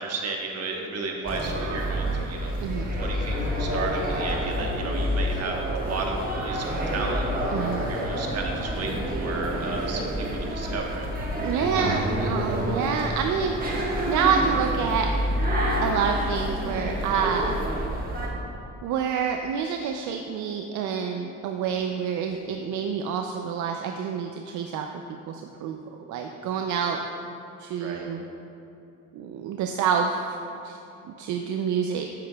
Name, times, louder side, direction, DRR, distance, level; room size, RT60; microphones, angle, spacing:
voice 1, 0.0-2.5 3.0-6.1 6.4-7.2 7.9-11.1 27.8-28.1, right 3 dB, 55° right, 0 dB, 1.2 m, -33 dB
sound 1, 1.2-18.3, equal, 30° right, 1.4 m, -28 dB
voice 2, 7.5-7.9 11.4-13.5 14.1-15.1 15.8-17.6 18.8-24.9 25.3-25.8 26.1-27.0 27.6-28.2 29.1-30.4 30.6-30.8 31.2-32.0, right 7 dB, 75° right, 3 dB, 0.5 m, -27 dB
8.4 x 7.5 x 2.3 m, 2.8 s
cardioid pair, 90°, 30 cm